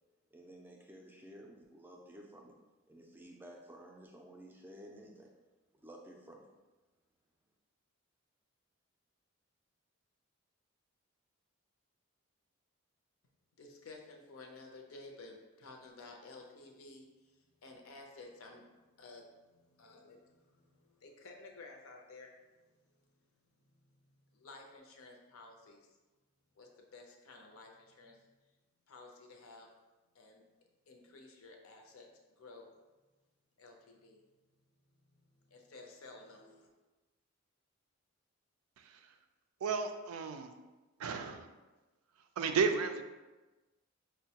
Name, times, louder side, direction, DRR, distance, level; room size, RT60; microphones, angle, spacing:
voice 1, 0.3-2.5 2.9-5.3 5.7-6.5, right 1 dB, 10° right, 0 dB, 0.3 m, -53 dB
voice 2, 13.6-23.3 24.3-25.9 26.5-28.2 28.9-29.7 30.1-30.4 30.9-32.7 33.6-34.2 35.3-36.7, left 3 dB, 80° left, 2 dB, 0.6 m, -54 dB
voice 3, 39.6-40.5 41.0-41.5 42.4-43.0, right 5 dB, 85° right, 7 dB, 0.4 m, -33 dB
5.3 x 2.1 x 2.8 m, 1.2 s
head